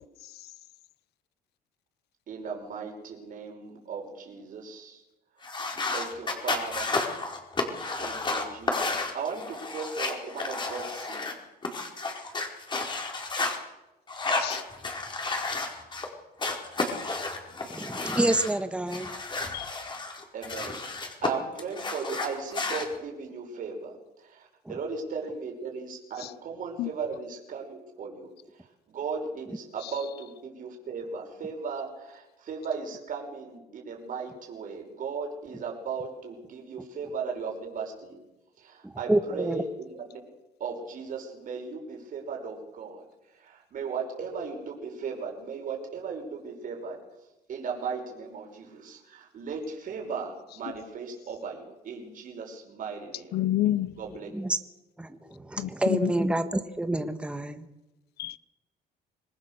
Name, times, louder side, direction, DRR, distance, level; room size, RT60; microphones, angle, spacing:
voice 1, 2.3-5.0 5.5-7.0 8.0-11.4 20.3-38.2 38.6-40.2 40.6-47.0 47.5-53.4 54.0-54.3, right 5 dB, 55° right, 5.7 m, -37 dB
sound 1, 5.4-13.6 14.1-16.1 16.4-18.5 18.9-21.3 21.6-22.8, left 3 dB, 30° left, 4.6 m, -32 dB
voice 2, 17.7-19.1 24.6-24.7 38.8-39.6 54.3-54.6 55.0-57.7, right 1 dB, 5° right, 1.5 m, -28 dB
voice 3, 53.3-53.9 55.6-56.1 58.2-58.4, left 14 dB, 75° left, 0.8 m, -28 dB
26.0 x 20.0 x 6.7 m
cardioid pair, 110°, 17 cm